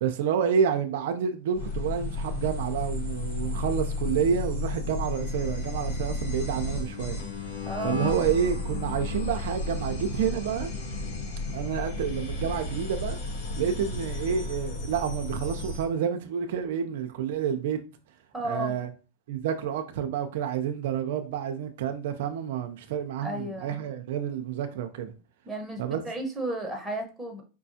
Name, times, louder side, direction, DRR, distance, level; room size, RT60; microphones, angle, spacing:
voice 1, 0.0-7.2 7.8-10.7 11.5-13.2 13.6-17.8 18.4-18.9 19.3-25.1 25.8-26.0, right 8 dB, 75° right, 0.4 m, -29 dB
sound 1, 1.5-15.9, left 2 dB, 90° left, 1.2 m, -33 dB
voice 2, 7.6-8.0 18.3-18.8 23.2-23.8 25.4-27.4, right 1 dB, 5° right, 1.0 m, -33 dB
4.9 x 2.2 x 2.7 m
supercardioid pair, 125°, 0 cm